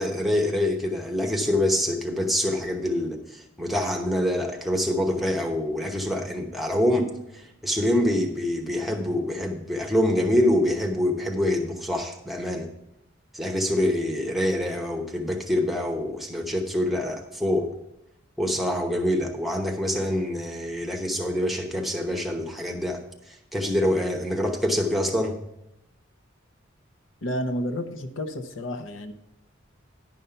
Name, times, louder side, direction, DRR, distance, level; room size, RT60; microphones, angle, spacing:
voice 1, 0.0-12.7 13.3-17.7 18.4-23.0 23.5-25.4, left 1 dB, ahead, 2 dB, 0.9 m, -25 dB
voice 2, 27.2-29.1, equal, 80° left, 8 dB, 0.7 m, -30 dB
10.5 x 5.5 x 5.6 m, 0.83 s
head